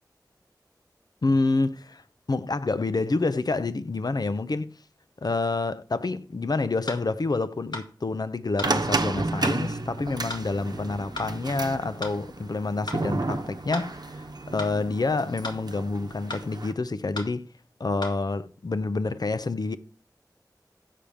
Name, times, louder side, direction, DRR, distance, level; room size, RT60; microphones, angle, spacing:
voice 1, 1.2-2.0 2.3-4.7 5.2-17.5 17.8-19.8, left 3 dB, 60° left, 0.6 m, -28 dB
sound 1, 6.9-7.0 7.7-7.9 8.6-8.8 9.4-9.6 10.3-10.5 11.2-11.3 12.0-12.2 12.9-13.0 13.7-13.9 14.6-14.8 15.4-15.6 16.3-16.5 17.2-17.3 18.0-18.2, left 2 dB, 75° left, 1.8 m, -35 dB
sound 2, 8.6-16.7, right 2 dB, 60° right, 0.9 m, -32 dB
7.5 x 5.0 x 6.9 m
wide cardioid pair, 45°, 8 cm